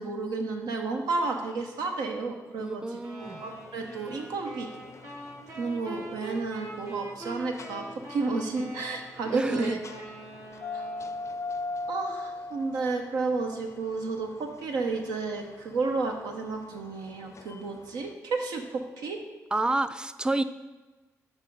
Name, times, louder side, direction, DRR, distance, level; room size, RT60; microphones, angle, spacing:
voice 1, 0.0-4.7 5.6-10.0 10.7-10.9 11.9-19.2, right 3 dB, 80° right, 3 dB, 0.6 m, -32 dB
voice 2, 2.6-3.4 9.2-9.8 19.5-20.4, right 2 dB, 10° right, 12 dB, 0.4 m, -29 dB
sound 1, 3.0-11.4, right 2 dB, 50° right, 1.4 m, -43 dB
sound 2, 3.2-18.1, left 3 dB, 50° left, 0.4 m, -42 dB
5.4 x 4.7 x 5.2 m, 1.2 s
supercardioid pair, 55°, 7 cm